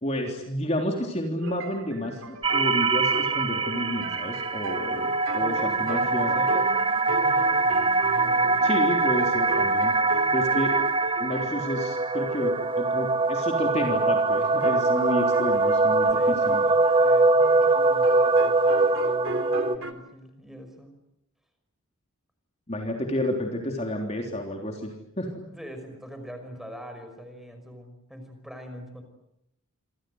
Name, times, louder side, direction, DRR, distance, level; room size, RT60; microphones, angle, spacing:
voice 1, 0.0-6.5 8.6-9.9 10.3-10.8 11.2-16.7 22.7-25.4, equal, 30° left, 2 dB, 3.5 m, -30 dB
sound 1, 1.4-11.6 13.3-13.5 14.6-19.9, right 2 dB, 70° right, 3.1 m, -37 dB
sound 2, 2.4-19.8, right 3 dB, 25° right, 1.0 m, -23 dB
voice 2, 5.4-6.7 7.1-7.8 8.2-8.6 16.1-20.9 25.4-29.0, equal, ahead, 6 dB, 5.5 m, -43 dB
28.0 x 26.0 x 8.0 m, 0.79 s
head